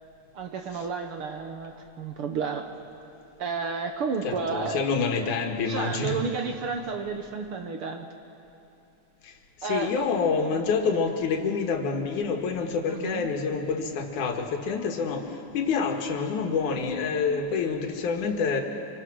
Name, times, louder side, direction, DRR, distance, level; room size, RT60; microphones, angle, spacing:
voice 1, 0.3-2.7 3.4-4.8 5.7-8.1 9.6-10.1 12.9-13.3, right 5 dB, 60° right, 5 dB, 1.6 m, -31 dB
voice 2, 4.2-6.2 9.2-18.6, left 5 dB, 85° left, 4 dB, 3.1 m, -27 dB
27.0 x 23.0 x 6.2 m, 2.7 s
omnidirectional pair, 3.4 m